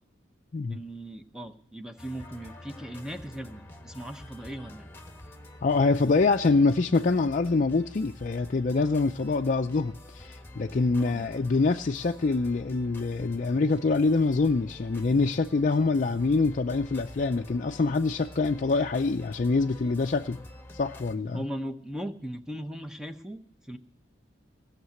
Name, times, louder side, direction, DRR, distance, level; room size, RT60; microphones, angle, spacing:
voice 1, 0.7-4.9 11.0-11.3 21.3-23.8, equal, 5° right, 8 dB, 0.7 m, -38 dB
sound 1, 2.0-21.2, left 1 dB, 10° left, 1.2 m, -48 dB
voice 2, 5.6-20.4 20.7-21.4, left 3 dB, 45° left, 3 dB, 0.4 m, -25 dB
16.0 x 6.6 x 9.3 m, 0.64 s
head